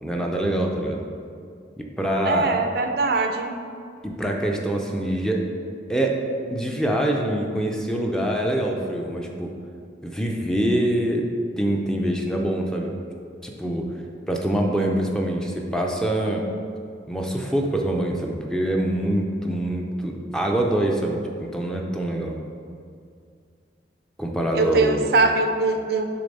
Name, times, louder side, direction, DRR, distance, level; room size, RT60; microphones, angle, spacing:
voice 1, 0.0-1.0 1.8-2.5 4.0-5.5 5.9-6.2 6.5-9.5 10.0-11.3 11.6-12.9 13.4-13.9 14.3-16.4 17.1-22.4 24.2-25.1, right 1 dB, 5° left, 0 dB, 0.5 m, -25 dB
voice 2, 2.3-3.6 24.5-26.0, right 3 dB, 60° right, 5 dB, 0.5 m, -22 dB
6.8 x 3.4 x 5.3 m, 2.3 s
head